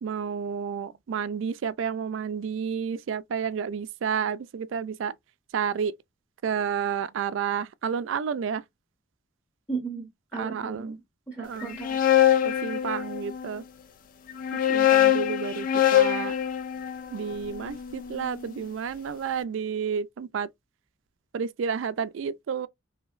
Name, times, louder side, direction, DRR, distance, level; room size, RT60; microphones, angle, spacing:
voice 1, 0.0-5.1 5.5-6.0 6.4-8.6 10.4-10.9 11.4-11.8 12.4-13.6 14.5-16.4 17.1-20.5 21.3-22.7, right 7 dB, 70° right, 0.3 m, -31 dB
voice 2, 9.7-12.0, right 4 dB, 15° left, 0.9 m, -36 dB
sound 1, 11.6-13.5 14.3-18.4, left 11 dB, 45° left, 0.3 m, -24 dB
2.9 x 2.7 x 2.4 m
head